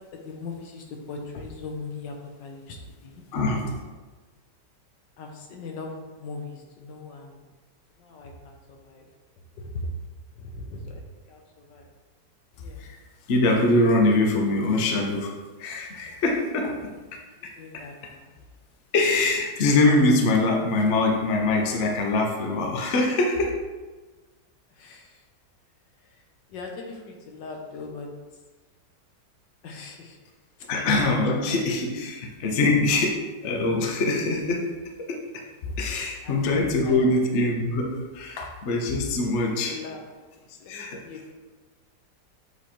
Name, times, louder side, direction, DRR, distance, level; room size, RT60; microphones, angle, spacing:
voice 1, 0.1-3.2 5.2-7.5 8.0-9.1 9.6-9.9 10.4-11.9 12.5-12.8 16.5-16.6 17.4-18.3 24.7-25.3 26.0-28.4 29.6-30.2 30.6-30.7 35.7-37.2 39.2-39.4 39.7-40.0 40.6-41.3, left 3 dB, 90° left, 1 dB, 1.6 m, -40 dB
voice 2, 3.3-3.7 12.8-13.0 13.3-15.3 15.6-16.8 17.4-17.5 18.9-23.5 30.7-34.7 35.0-39.8 40.7-41.0, left 2 dB, 50° left, 1 dB, 1.0 m, -23 dB
8.1 x 3.2 x 4.3 m, 1.3 s
omnidirectional pair, 1.9 m